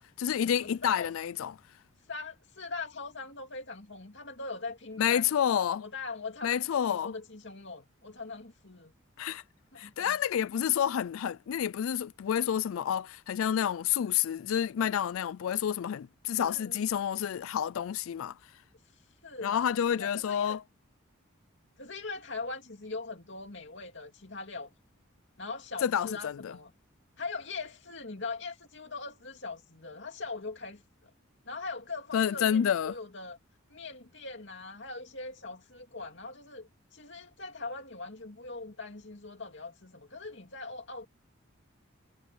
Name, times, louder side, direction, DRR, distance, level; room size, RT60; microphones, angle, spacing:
voice 1, 0.0-1.5 5.0-5.8 6.4-7.1 9.2-9.4 9.8-18.4 19.4-20.6 25.8-26.5 32.1-33.0, left 9 dB, 75° left, 0.3 m, -29 dB
voice 2, 0.6-1.1 2.1-5.2 5.8-8.9 9.7-10.2 16.4-16.7 19.2-20.6 21.8-24.7 25.4-26.7 27.2-31.1 31.5-33.4 33.7-41.1, left 3 dB, 55° left, 2.7 m, -41 dB
head